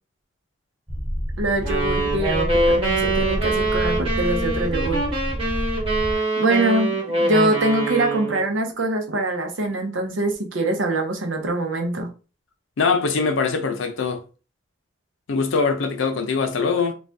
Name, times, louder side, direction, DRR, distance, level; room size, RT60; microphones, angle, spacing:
sound 1, 0.9-6.1, equal, 5° left, 0.3 m, -28 dB
voice 1, 1.4-5.0 6.1-12.1, right 1 dB, 80° right, 0.7 m, -24 dB
sound 2, 1.6-8.5, right 2 dB, 25° right, 1.1 m, -24 dB
voice 2, 12.8-14.2 15.3-16.9, left 4 dB, 80° left, 0.5 m, -22 dB
2.5 x 2.3 x 3.3 m
head